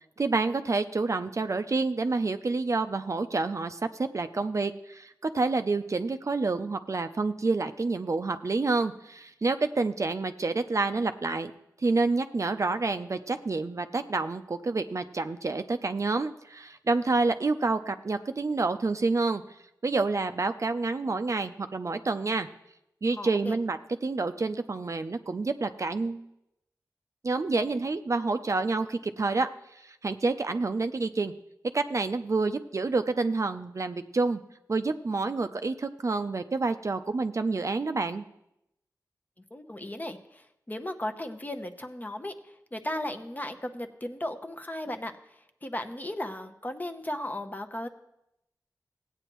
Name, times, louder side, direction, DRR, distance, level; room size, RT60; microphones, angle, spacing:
voice 1, 0.2-11.5 11.8-19.4 19.8-22.5 23.0-26.2 27.2-29.5 29.8-31.3 31.7-34.4 34.7-38.2, right 3 dB, 45° right, 9 dB, 0.5 m, -28 dB
voice 2, 23.2-23.6 39.5-42.3 42.7-45.4 45.6-47.9, left 1 dB, 25° left, 6 dB, 0.8 m, -36 dB
16.5 x 8.9 x 3.0 m, 0.83 s
wide cardioid pair, 70°, 7 cm